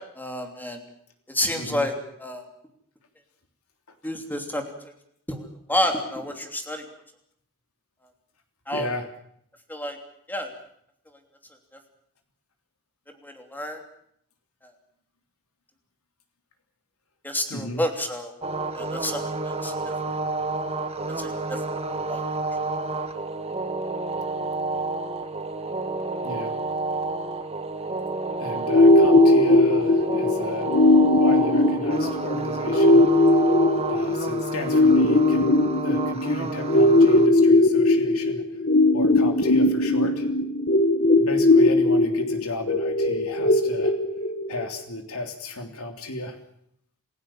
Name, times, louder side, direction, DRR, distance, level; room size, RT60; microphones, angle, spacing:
voice 1, 0.2-0.8 1.3-1.9 2.2-2.4 4.0-4.6 5.3-5.4 5.7-6.8 8.7-8.9 9.7-10.0 10.3-10.5 13.2-13.8 17.2-18.3 18.7-19.9 21.2-21.6 22.1-22.2, left 1 dB, 10° left, 4 dB, 3.2 m, -29 dB
voice 2, 1.5-1.9 8.7-9.1 17.5-17.8 26.2-26.6 28.4-30.7 31.1-33.1 33.9-38.4 38.9-40.3 41.2-44.0 44.5-46.4, left 1 dB, 75° left, 5 dB, 3.3 m, -34 dB
sound 1, 18.4-37.3, right 3 dB, 30° right, 1.9 m, -30 dB
sound 2, 28.7-44.7, left 2 dB, 50° left, 2.2 m, -19 dB
28.5 x 16.0 x 7.4 m, 0.71 s
head